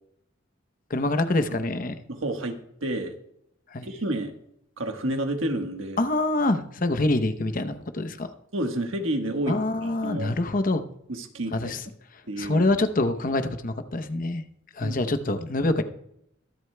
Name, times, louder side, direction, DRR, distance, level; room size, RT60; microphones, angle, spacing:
voice 1, 0.9-2.0 3.7-3.9 6.0-8.3 9.5-10.8 11.5-11.8 12.4-14.4 14.7-15.8, left 2 dB, 45° left, 9 dB, 0.8 m, -25 dB
voice 2, 2.1-3.1 3.8-4.3 4.8-6.0 8.5-9.6 10.0-10.4 11.1-11.7 12.3-12.7 14.8-14.9, right 1 dB, 85° right, 5 dB, 1.4 m, -30 dB
22.5 x 8.1 x 2.2 m, 0.75 s
head